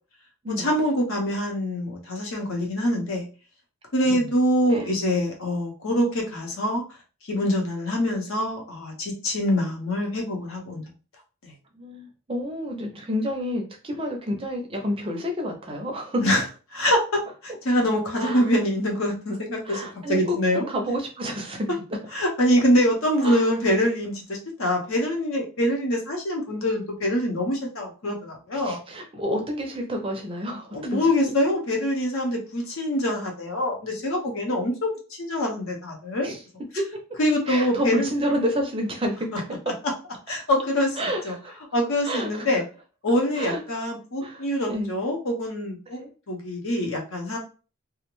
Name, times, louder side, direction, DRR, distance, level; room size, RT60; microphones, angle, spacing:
voice 1, 0.6-3.2 3.9-6.8 7.3-10.8 16.2-16.4 16.7-19.8 20.1-20.7 22.1-28.8 30.7-34.9 35.2-36.3 37.2-38.1 40.3-41.3 41.7-42.6 43.0-46.0 46.3-47.4, left 1 dB, 70° left, 1 dB, 0.8 m, -24 dB
voice 2, 11.8-16.2 18.2-18.5 19.6-22.0 23.2-23.5 28.5-31.1 36.2-36.4 36.8-37.0 37.5-39.8 41.0-41.6 42.0-42.6 43.3-43.8 44.2-44.9 45.9-46.1, equal, 25° right, 3 dB, 0.4 m, -29 dB
2.4 x 2.1 x 3.0 m, 0.35 s
head